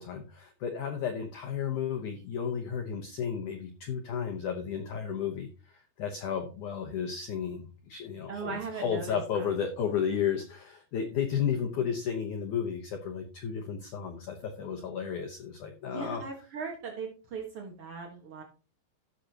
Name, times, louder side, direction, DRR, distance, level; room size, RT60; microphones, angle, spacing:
voice 1, 0.0-5.5 5.7-16.2, left 7 dB, 85° left, 5 dB, 1.7 m, -33 dB
voice 2, 8.3-9.5 15.9-18.4, right 5 dB, 85° right, 0 dB, 1.2 m, -39 dB
15.5 x 6.5 x 2.9 m, 0.34 s
omnidirectional pair, 5.1 m